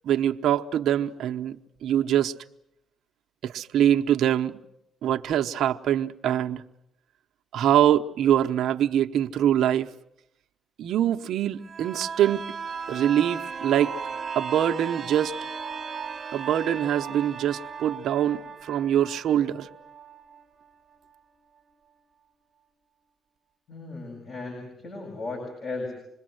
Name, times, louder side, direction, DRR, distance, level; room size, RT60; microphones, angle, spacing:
voice 1, 0.0-2.3 3.4-4.6 5.0-6.6 7.5-9.9 10.8-12.4 12.9-14.0 14.4-15.3 16.3-19.7, right 10 dB, 75° right, 0.9 m, -24 dB
sound 1, 11.6-21.2 21.6-21.7, right 6 dB, 40° right, 1.1 m, -36 dB
voice 2, 23.7-25.9, left 3 dB, 55° left, 7.8 m, -36 dB
27.0 x 21.5 x 7.9 m
cardioid pair, 90°, 0 cm